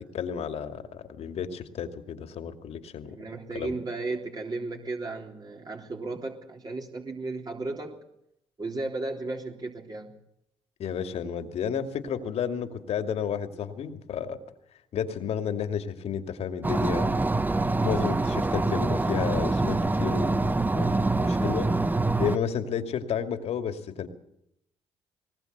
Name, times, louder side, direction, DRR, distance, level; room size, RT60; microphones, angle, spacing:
voice 1, 0.0-3.2 3.5-3.7 10.8-14.4 14.9-17.2 17.8-21.7 22.2-24.1, left 7 dB, 65° left, 8 dB, 2.4 m, -32 dB
voice 2, 3.1-8.0 8.6-10.2, right 3 dB, 35° right, 1 dB, 3.5 m, -34 dB
sound 1, 16.6-22.4, right 2 dB, 15° right, 1.0 m, -25 dB
20.5 x 19.5 x 8.1 m, 0.77 s
supercardioid pair, 65°, 11 cm